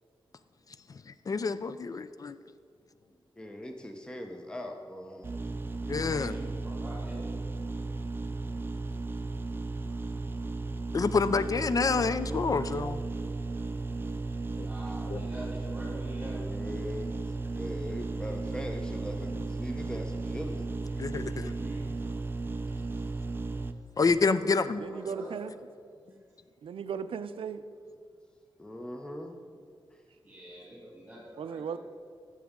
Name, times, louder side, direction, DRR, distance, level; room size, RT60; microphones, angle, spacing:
voice 1, 0.9-2.4 5.9-6.4 10.9-13.0 14.6-14.7 15.1-15.3 21.0-21.5 24.0-24.8, left 4 dB, 40° left, 13 dB, 0.3 m, -28 dB
voice 2, 3.4-5.3 16.3-17.1 17.5-20.7 28.6-29.4 29.9-30.0, equal, 10° left, 3 dB, 0.7 m, -40 dB
sound 1, 5.2-23.7, right 3 dB, 25° right, 0.4 m, -35 dB
voice 3, 5.9-7.3 14.6-16.4 21.1-21.9 24.8-25.3 30.2-31.8, right 1 dB, 5° right, -7 dB, 2.7 m, -46 dB
voice 4, 24.8-25.6 26.6-27.6 31.4-31.8, right 7 dB, 85° right, 12 dB, 0.4 m, -36 dB
15.0 x 7.1 x 3.6 m, 2.2 s
wide cardioid pair, 100°, 9 cm